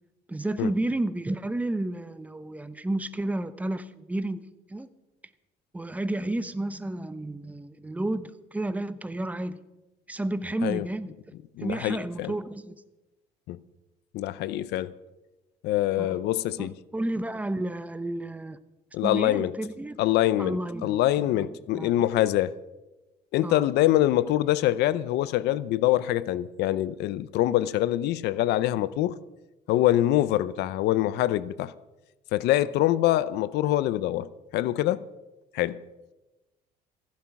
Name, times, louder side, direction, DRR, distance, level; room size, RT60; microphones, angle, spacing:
voice 1, 0.3-4.4 4.7-4.9 5.7-9.6 10.1-11.1 11.6-12.7 16.0-16.2 16.6-18.6 19.0-20.0 20.4-21.5 21.7-21.9 23.4-23.7, right 1 dB, 10° right, 0.8 m, -31 dB
voice 2, 11.6-12.3 13.5-13.6 14.1-14.9 15.6-16.7 18.9-19.5 20.0-22.5 23.3-29.1 29.7-31.7 32.3-35.0 35.5-35.8, left 14 dB, 80° left, 0.6 m, -24 dB
15.0 x 11.5 x 5.9 m
cardioid pair, 110°, 17 cm